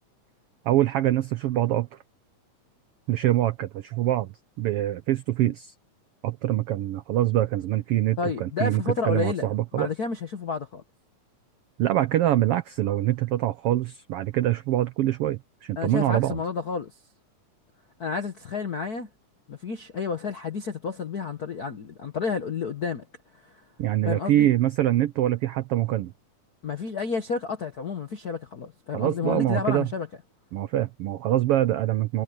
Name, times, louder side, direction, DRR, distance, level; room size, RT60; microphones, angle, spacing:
voice 1, 0.6-2.0 3.1-5.7 6.2-9.9 11.8-16.4 23.8-26.1 28.9-29.9 30.5-32.2, right 13 dB, 85° right, 1.3 m, -24 dB
voice 2, 8.2-9.5 9.7-10.8 15.8-16.9 18.0-19.1 19.5-23.1 23.3-23.6 24.0-24.5 26.6-30.1, left 5 dB, 65° left, 0.9 m, -30 dB
omnidirectional pair, 3.5 m